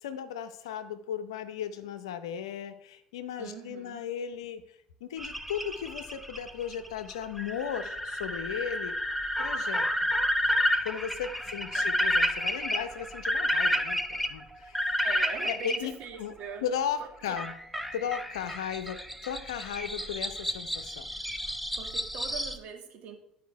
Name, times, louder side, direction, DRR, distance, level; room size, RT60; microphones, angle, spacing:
voice 1, 0.0-4.6 5.0-9.0 9.4-10.1 10.8-15.0 15.5-15.9 16.2-16.3 16.6-17.5 17.9-21.1, left 8 dB, 80° left, 11 dB, 0.7 m, -36 dB
voice 2, 3.4-4.0 11.7-12.0 15.0-16.6 17.0-17.4 21.8-23.2, right 6 dB, 55° right, 4 dB, 1.7 m, -42 dB
sound 1, 5.2-15.8 17.4-22.6, left 1 dB, ahead, 0.9 m, -30 dB
11.5 x 5.1 x 4.6 m, 0.77 s
hypercardioid pair, 65°, 3 cm